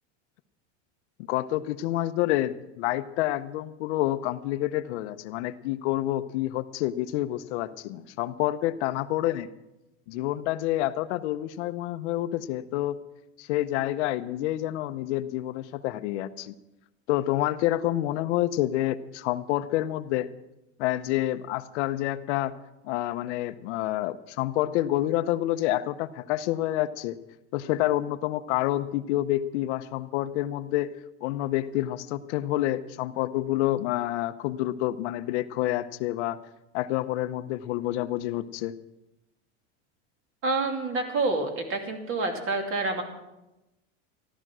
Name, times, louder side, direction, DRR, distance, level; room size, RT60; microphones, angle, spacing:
voice 1, 1.3-9.5 10.1-13.0 13.4-16.5 17.1-20.3 20.8-22.5 22.8-27.2 27.5-30.9 31.2-36.4 36.7-38.7, left 14 dB, 70° left, 11 dB, 0.8 m, -28 dB
voice 2, 40.4-43.0, right 3 dB, 35° right, 4 dB, 2.6 m, -28 dB
14.5 x 12.5 x 6.2 m, 0.95 s
supercardioid pair, 145°, 36 cm